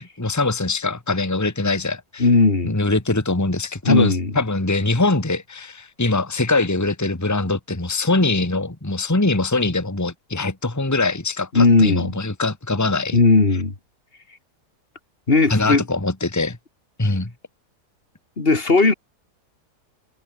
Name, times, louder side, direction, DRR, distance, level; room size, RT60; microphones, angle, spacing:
voice 1, 0.0-2.3 2.6-13.2 15.5-16.6 17.0-17.3, left 2 dB, 10° left, 2.0 m, -22 dB
voice 2, 2.2-2.7 3.8-4.3 11.5-12.1 13.1-13.7 15.3-15.8 18.4-18.9, left 3 dB, 35° left, 2.8 m, -16 dB
omnidirectional pair, 1.7 m